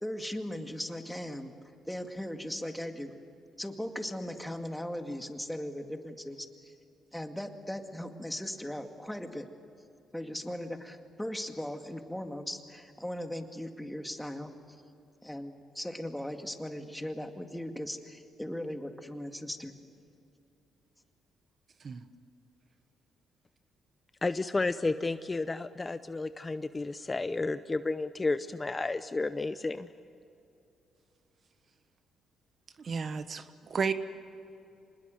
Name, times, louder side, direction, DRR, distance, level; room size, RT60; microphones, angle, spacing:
voice 1, 0.0-1.5 1.9-3.1 3.6-6.7 7.1-9.5 10.1-14.5 15.2-19.7, left 1 dB, 5° left, 5 dB, 2.1 m, -38 dB
voice 2, 24.2-29.9, left 3 dB, 25° left, 12 dB, 0.7 m, -32 dB
voice 3, 32.8-33.9, right 5 dB, 45° right, 11 dB, 1.3 m, -32 dB
26.0 x 20.5 x 7.9 m, 2.7 s
cardioid pair, 90°, 0 cm